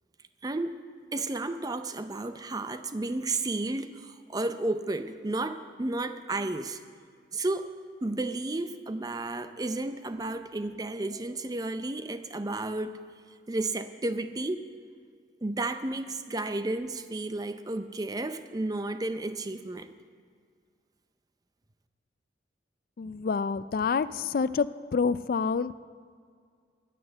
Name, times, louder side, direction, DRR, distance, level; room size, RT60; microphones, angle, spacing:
voice 1, 0.4-0.7 1.1-6.8 7.3-7.7 8.0-13.0 13.5-14.7 15.4-19.9, right 2 dB, 20° right, 10 dB, 0.5 m, -32 dB
voice 2, 23.0-24.7 24.9-25.7, left 5 dB, 55° left, 15 dB, 0.3 m, -27 dB
10.0 x 9.8 x 8.0 m, 2.1 s
head